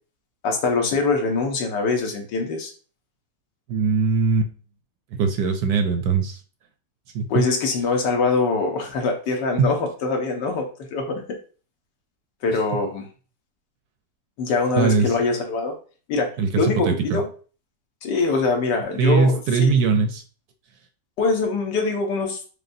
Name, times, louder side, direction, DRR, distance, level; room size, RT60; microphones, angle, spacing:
voice 1, 0.4-2.7 7.3-11.4 12.4-13.0 14.4-15.8 16.1-17.3 18.0-19.7 21.2-22.4, left 4 dB, 75° left, 3 dB, 1.5 m, -23 dB
voice 2, 3.7-4.5 5.1-6.4 7.1-7.5 9.6-9.7 14.8-15.1 16.4-17.2 19.0-20.2, right 4 dB, 70° right, 7 dB, 1.0 m, -20 dB
6.5 x 2.3 x 2.6 m, 0.38 s
omnidirectional pair, 1.9 m